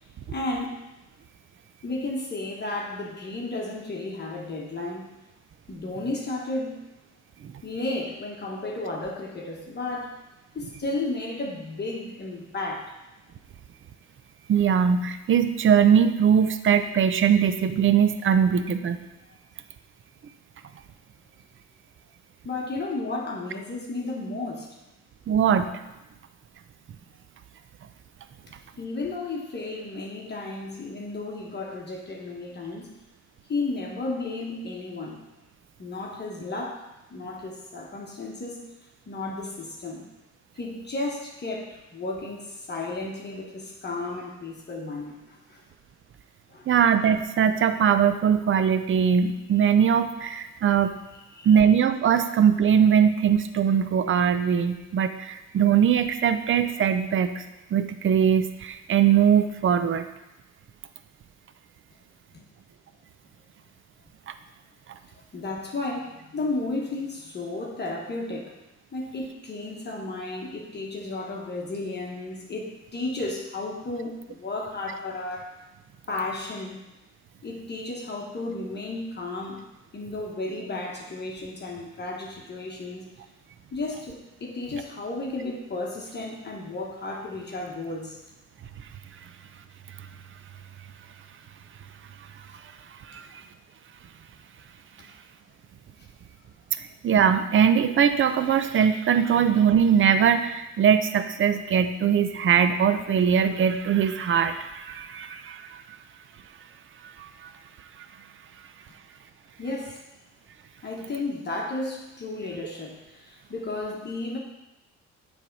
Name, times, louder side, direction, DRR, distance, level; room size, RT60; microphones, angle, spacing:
voice 1, 0.3-0.8 1.8-5.1 5.7-6.8 7.6-10.2 10.5-12.9 22.4-24.7 28.8-33.0 33.5-35.2 35.8-36.8 37.1-38.6 39.1-40.1 40.5-45.6 46.5-46.7 51.1-51.5 62.3-62.4 65.3-68.6 68.9-75.5 76.1-76.8 77.4-79.6 79.9-83.1 83.7-88.2 109.6-110.0 110.8-114.4, left 2 dB, 35° left, -1 dB, 1.2 m, -33 dB
voice 2, 14.5-19.0 25.3-25.8 46.7-50.9 51.4-57.4 57.7-60.1 64.3-64.4 93.1-93.4 96.8-105.8 107.0-107.5 108.0-108.1, right 8 dB, 40° right, 10 dB, 0.5 m, -21 dB
7.4 x 3.5 x 5.3 m, 0.97 s
cardioid pair, 90°, 30 cm